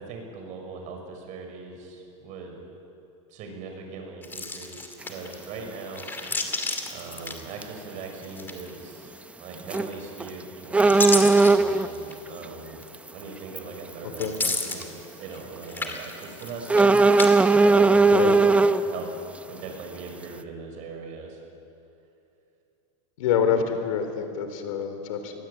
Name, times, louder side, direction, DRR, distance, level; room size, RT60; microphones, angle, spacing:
voice 1, 0.0-2.6 3.3-6.1 6.9-9.1 9.4-12.8 13.1-16.9 17.6-18.5 18.8-19.1 19.5-21.4, right 4 dB, 45° right, 3 dB, 6.2 m, -39 dB
Lemon Juicy Squeeze Fruit, 4.2-5.5 5.9-7.9 8.2-8.9 9.7-10.2 10.6-12.2 12.8-12.9 14.1-15.4 15.7-17.3 17.6-18.3, left 3 dB, 10° left, 2.6 m, -31 dB
sound 1, 5.0-5.1 6.7-6.9 7.2-7.3 7.6-7.7 9.6-9.9 10.2-10.3 10.7-11.9 12.9-13.1 13.6-13.7 14.1-14.3 14.8-14.9 16.7-18.8, right 3 dB, 5° right, 0.6 m, -18 dB
voice 2, 23.2-25.3, left 7 dB, 85° left, 7 dB, 3.7 m, -26 dB
24.5 x 20.0 x 8.8 m, 2.7 s
supercardioid pair, 140°, 17 cm